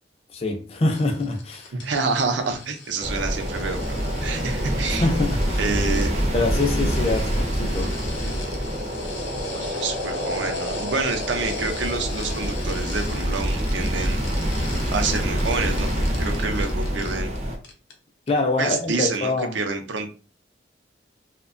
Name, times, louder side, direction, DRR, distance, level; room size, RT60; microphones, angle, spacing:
voice 1, 0.3-1.7 5.0-5.6 6.3-7.9 18.3-19.6, left 2 dB, 35° left, 0.4 m, -24 dB
sound 1, 0.9-17.4 17.6-17.9 18.3-18.4, left 5 dB, 80° left, 0.5 m, -41 dB
voice 2, 1.7-5.1 5.6-6.3 9.4-14.2 14.9-15.9 16.2-17.3 18.6-20.1, right 4 dB, 85° right, 0.5 m, -28 dB
sound 2, 3.0-17.6, equal, 35° right, 0.5 m, -26 dB
2.6 x 2.1 x 2.5 m
head